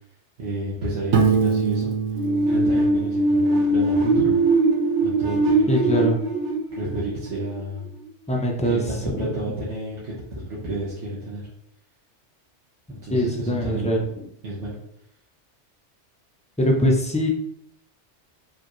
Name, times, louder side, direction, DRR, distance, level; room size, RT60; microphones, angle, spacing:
voice 1, 0.4-1.9 2.5-4.4 5.0-6.1 6.7-7.9 8.6-11.4 12.9-14.0 14.4-14.8, right 1 dB, 70° right, -7 dB, 1.4 m, -31 dB
Piano, 1.1-3.9, right 5 dB, 90° right, 1.0 m, -24 dB
sound 1, 2.1-7.8, right 2 dB, 50° right, 0.8 m, -21 dB
voice 2, 5.7-6.2 8.3-9.2 13.1-14.0 16.6-17.3, equal, 10° left, -1 dB, 0.4 m, -22 dB
4.8 x 3.4 x 3.1 m, 0.74 s
omnidirectional pair, 1.2 m